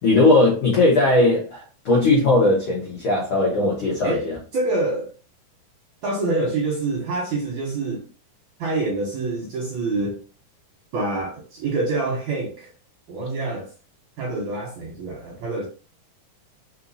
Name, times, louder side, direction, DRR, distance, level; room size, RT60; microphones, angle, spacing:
voice 1, 0.0-4.3, left 2 dB, 90° left, 1.2 m, -18 dB
voice 2, 4.5-5.1 6.0-8.1 8.6-10.2 10.9-12.7 13.1-13.7 14.2-15.7, right 2 dB, 75° right, 1.7 m, -26 dB
5.5 x 2.9 x 2.7 m
omnidirectional pair, 4.4 m